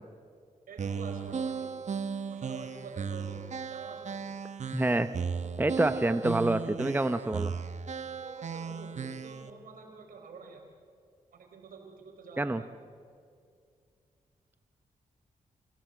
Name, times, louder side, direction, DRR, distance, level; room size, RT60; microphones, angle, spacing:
voice 1, 0.7-1.7 2.2-3.4 3.7-4.3 8.2-10.6 11.3-12.6, right 4 dB, 75° right, 3 dB, 4.3 m, -47 dB
sound 1, 0.8-9.5, right 6 dB, 55° right, 1.1 m, -36 dB
voice 2, 4.7-5.1 5.6-7.5 12.4-12.6, right 2 dB, 15° right, 11 dB, 0.9 m, -27 dB
27.0 x 17.0 x 7.8 m, 2.3 s
cardioid pair, 60°, 15 cm